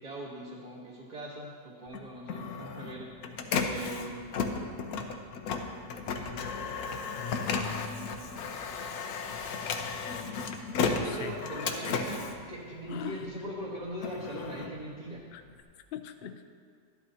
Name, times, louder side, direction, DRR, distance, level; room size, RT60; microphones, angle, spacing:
voice 1, 0.0-3.3 3.6-4.4 6.1-6.5 10.5-15.2, right 1 dB, 30° right, -7 dB, 1.2 m, -41 dB
Printer, 1.9-13.3 13.8-15.6, left 5 dB, 85° left, 1.2 m, -34 dB
voice 2, 7.2-8.1 10.9-11.4 12.9-13.3 15.3-15.4 15.9-16.4, left 10 dB, 60° left, 7 dB, 0.6 m, -40 dB
12.5 x 11.0 x 2.8 m, 2.1 s
omnidirectional pair, 1.5 m